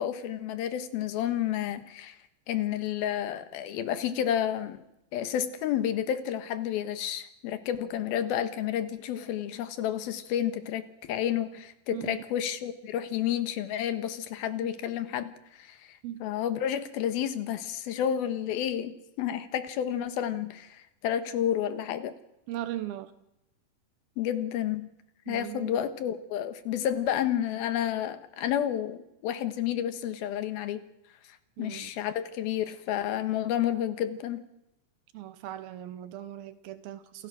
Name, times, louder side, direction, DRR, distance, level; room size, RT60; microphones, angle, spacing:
voice 1, 0.0-2.2 2.5-4.8 5.1-15.3 15.6-22.1 24.2-24.9 25.3-30.8 31.6-34.4, left 10 dB, 90° left, 10 dB, 3.2 m, -30 dB
voice 2, 11.9-12.2 14.6-14.7 16.0-16.2 22.5-23.1 25.3-25.8 31.6-31.9 35.1-37.3, right 13 dB, 85° right, 11 dB, 2.9 m, -38 dB
28.0 x 15.0 x 6.3 m, 0.87 s
omnidirectional pair, 4.2 m